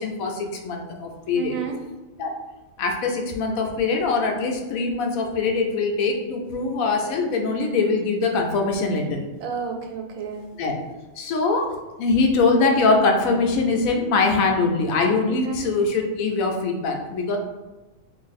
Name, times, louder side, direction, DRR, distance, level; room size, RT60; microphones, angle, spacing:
voice 1, 0.0-1.5 2.2-2.3 2.8-9.2 10.6-10.7 11.2-11.7 12.0-17.4, left 3 dB, 80° left, 2 dB, 1.0 m, -22 dB
voice 2, 1.3-1.8 9.4-10.4 15.3-15.6, right 5 dB, 80° right, 2 dB, 1.0 m, -30 dB
2.7 x 2.6 x 3.9 m, 1.1 s
omnidirectional pair, 1.4 m